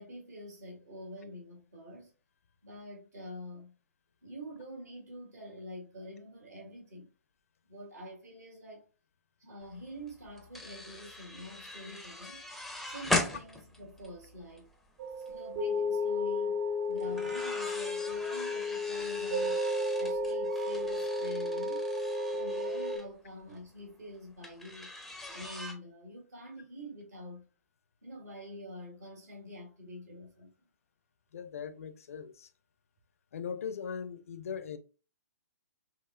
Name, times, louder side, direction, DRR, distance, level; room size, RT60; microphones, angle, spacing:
voice 1, 0.0-2.1 2.6-3.8 4.2-7.1 7.7-8.9 9.4-12.4 12.9-14.7 15.2-16.6 16.9-19.6 20.0-21.9 22.3-24.9 25.3-27.5 28.0-30.5, equal, 70° right, 1.7 m, -46 dB
sound 1, 9.7-9.8 10.0-14.7 15.1-15.3 17.0-23.0 24.4-25.7, left 2 dB, ahead, 0.4 m, -39 dB
sound 2, 15.0-23.0, left 2 dB, 50° right, 0.8 m, -33 dB
voice 2, 31.3-32.5 33.3-34.8, left 7 dB, 55° left, 0.4 m, -39 dB
5.6 x 2.0 x 2.3 m
figure-of-eight pair, 125°, 9 cm